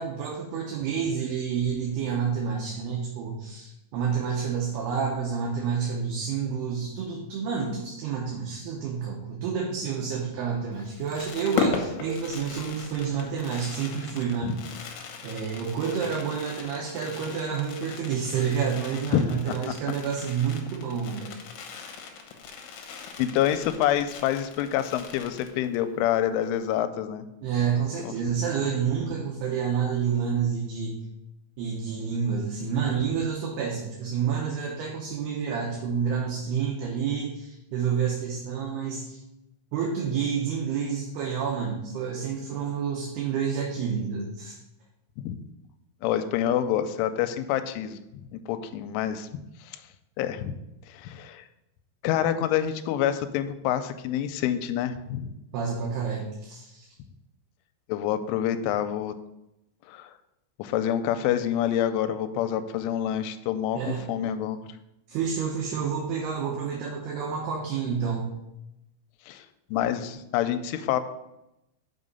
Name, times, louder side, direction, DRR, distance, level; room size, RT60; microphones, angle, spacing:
voice 1, 0.0-14.6 15.2-21.3 27.4-31.0 31.6-39.2 39.7-44.6 55.5-56.9 63.7-64.1 65.1-68.3, right 6 dB, 70° right, -1 dB, 2.7 m, -29 dB
Fireworks, 10.7-25.9 26.2-26.3 26.5-26.8, left 6 dB, 75° left, 2.6 m, -37 dB
voice 2, 19.1-19.6 23.2-27.3 28.0-28.1 28.6-28.7 45.2-45.4 46.0-49.8 50.2-50.6 50.9-51.4 52.0-55.3 57.9-59.1 59.9-60.1 60.6-63.8 64.1-64.6 69.3-69.5 69.7-71.0, left 10 dB, 90° left, 10 dB, 3.1 m, -27 dB
6.3 x 6.0 x 5.3 m, 0.88 s
omnidirectional pair, 5.5 m